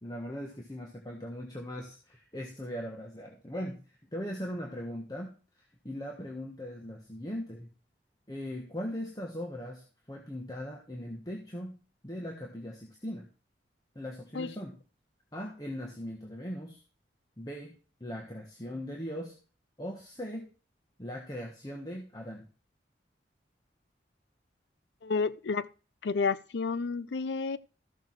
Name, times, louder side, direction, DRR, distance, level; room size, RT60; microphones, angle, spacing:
voice 1, 0.0-5.3 5.8-7.7 8.3-11.8 12.0-13.3 13.9-14.8 15.3-16.8 17.4-19.3 19.8-20.5 21.0-22.5, equal, 20° left, 1.4 m, -39 dB
voice 2, 25.0-25.7 26.0-27.6, left 4 dB, 75° left, 0.5 m, -30 dB
14.0 x 6.5 x 4.7 m
head